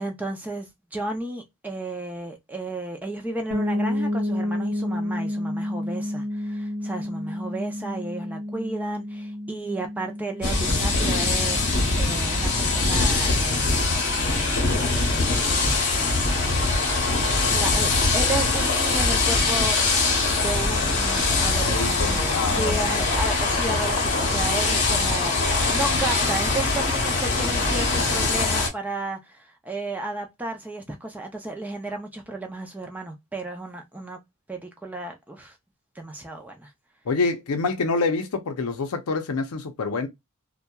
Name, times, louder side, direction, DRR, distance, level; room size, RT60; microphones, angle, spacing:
voice 1, 0.0-13.8 14.2-15.8 17.5-20.0 20.4-34.2 34.5-35.6 36.0-36.7, right 2 dB, 5° right, 0.4 m, -33 dB
sound 1, 3.5-13.2, left 1 dB, 65° right, 0.7 m, -30 dB
sound 2, 10.4-28.7, left 3 dB, 50° left, 0.8 m, -22 dB
voice 2, 21.6-23.0 37.1-40.1, left 4 dB, 80° left, 0.5 m, -27 dB
2.7 x 2.1 x 2.2 m
head